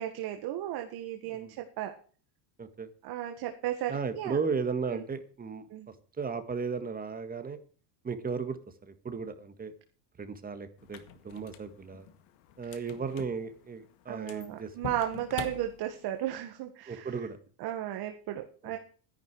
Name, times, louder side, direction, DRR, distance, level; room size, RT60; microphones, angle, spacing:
voice 1, 0.0-1.9 3.0-4.4 4.9-5.1 5.7-5.9 12.7-12.8 14.1-17.1 17.6-18.8, right 12 dB, 55° right, 5 dB, 1.9 m, -35 dB
voice 2, 2.6-2.9 3.9-5.7 6.2-7.6 8.0-9.7 10.2-11.0 11.2-12.1 12.6-14.7 16.9-17.4 18.6-18.7, right 5 dB, 20° right, 10 dB, 1.8 m, -35 dB
sound 1, 10.8-16.3, left 10 dB, 75° left, 2.0 m, -47 dB
13.0 x 11.0 x 4.9 m, 0.41 s
cardioid pair, 140°, 45 cm